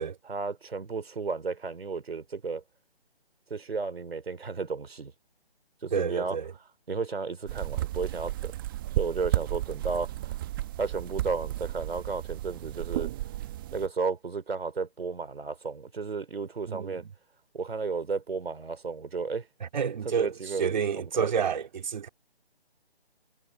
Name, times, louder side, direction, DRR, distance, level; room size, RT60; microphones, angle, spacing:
voice 1, 0.2-2.6 3.5-5.1 5.8-6.4 6.9-8.5 9.0-10.4 10.8-13.1 13.7-17.1 17.5-19.5 20.0-21.3, right 4 dB, 70° right, 3.2 m, -33 dB
voice 2, 5.9-6.5 16.7-17.1 19.6-22.1, right 7 dB, 45° right, 2.8 m, -29 dB
sound 1, 7.5-13.9, right 14 dB, 20° right, 1.5 m, -33 dB
figure-of-eight pair, 155°, 32 cm